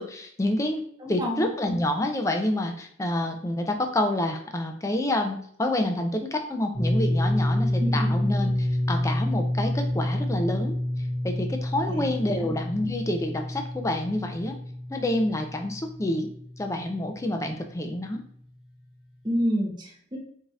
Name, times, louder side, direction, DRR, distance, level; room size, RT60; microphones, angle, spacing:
voice 1, 0.0-0.8 1.1-10.8 11.2-14.6 14.9-16.3 16.6-18.2, left 1 dB, 15° left, 4 dB, 0.4 m, -28 dB
voice 2, 1.0-1.5 7.8-8.1 11.9-12.0 19.2-20.2, equal, 20° right, -1 dB, 0.8 m, -28 dB
sound 1, 6.7-17.3, left 1 dB, ahead, 1.4 m, -28 dB
4.9 x 2.7 x 2.4 m, 0.64 s
head